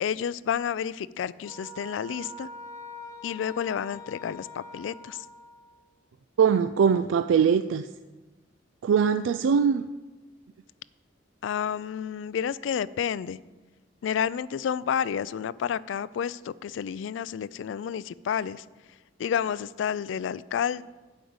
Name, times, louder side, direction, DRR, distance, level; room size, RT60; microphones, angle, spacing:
voice 1, 0.0-2.5 3.2-5.3 11.4-13.4 14.0-18.7 19.2-20.8, left 8 dB, 70° left, 18 dB, 0.3 m, -30 dB
sound 1, 1.4-5.9, left 1 dB, 15° left, 0.7 m, -44 dB
voice 2, 6.4-7.9 8.8-9.8, right 7 dB, 75° right, 10 dB, 0.3 m, -22 dB
8.7 x 5.3 x 7.8 m, 1.2 s
head